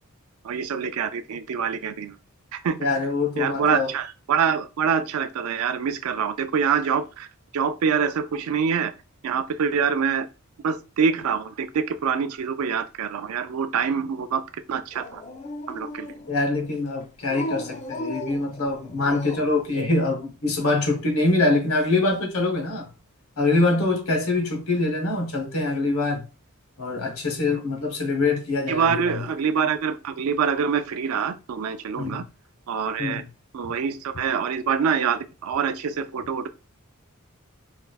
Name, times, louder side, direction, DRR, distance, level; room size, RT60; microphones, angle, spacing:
voice 1, 0.4-2.2 2.5-2.8 3.4-7.3 7.5-8.9 9.2-10.3 10.6-14.4 14.7-15.2 15.7-16.1 28.7-32.2 32.7-33.2 33.5-36.5, right 6 dB, 80° right, 0.4 m, -25 dB
voice 2, 2.8-3.9 16.3-22.9 23.4-26.3 26.8-29.3 32.0-32.2 33.0-33.2, left 2 dB, 75° left, 0.8 m, -24 dB
Dog, 14.9-16.4 17.2-19.6, left 1 dB, 35° left, 0.4 m, -36 dB
4.3 x 2.0 x 2.2 m
head